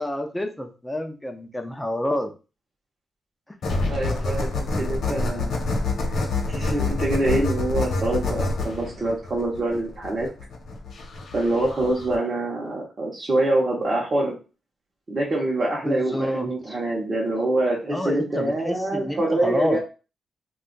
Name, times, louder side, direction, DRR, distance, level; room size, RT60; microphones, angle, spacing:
voice 1, 0.0-2.3 15.8-16.8 17.9-19.8, left 1 dB, 10° left, 5 dB, 0.5 m, -28 dB
sound 1, 3.6-12.1, left 3 dB, 65° left, 0.9 m, -27 dB
voice 2, 3.9-4.5 4.8-5.5 6.5-10.3 11.3-14.3 15.1-19.8, right 2 dB, 35° right, -4 dB, 0.8 m, -25 dB
2.6 x 2.3 x 3.8 m, 0.32 s
wide cardioid pair, 140°, 0 cm